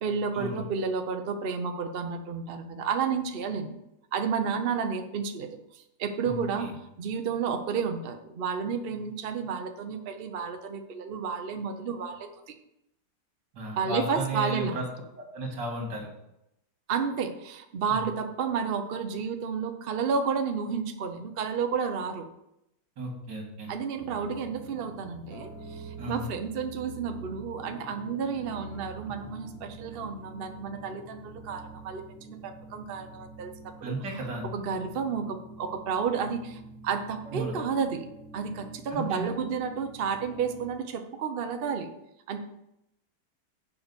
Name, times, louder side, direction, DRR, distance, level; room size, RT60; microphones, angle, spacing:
voice 1, 0.0-3.7 4.1-12.5 13.8-14.8 16.9-22.3 23.7-34.0 34.5-38.1 38.3-41.9 42.3-42.4, right 6 dB, 45° right, 6 dB, 0.7 m, -31 dB
voice 2, 6.2-6.7 13.5-14.8 15.2-16.1 17.9-18.0 23.0-23.7 26.0-26.2 33.8-34.4 37.3-37.5 38.9-39.3, right 1 dB, 80° right, 0 dB, 2.7 m, -34 dB
sound 1, 24.0-40.7, right 3 dB, 75° left, 2.5 m, -46 dB
7.2 x 5.1 x 6.9 m, 0.83 s
omnidirectional pair, 1.9 m